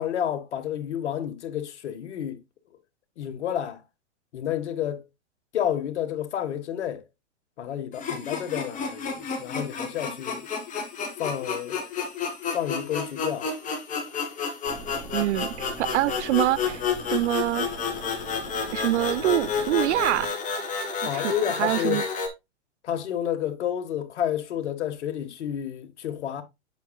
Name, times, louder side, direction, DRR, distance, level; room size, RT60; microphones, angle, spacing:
voice 1, 0.0-2.4 3.2-3.8 4.3-5.0 5.5-7.0 7.6-10.4 11.2-11.8 12.5-13.5 21.0-22.0 22.8-26.4, left 10 dB, 75° left, 1.5 m, -30 dB
sound 1, 7.9-22.3, left 5 dB, 20° left, 2.1 m, -31 dB
sound 2, 14.6-20.3, right 2 dB, 15° right, 1.8 m, -42 dB
voice 2, 15.1-16.8 17.1-17.7 18.7-20.3 21.1-21.3 21.6-22.0, right 15 dB, 80° right, 0.5 m, -25 dB
8.2 x 7.4 x 2.3 m
hypercardioid pair, 130°, 34 cm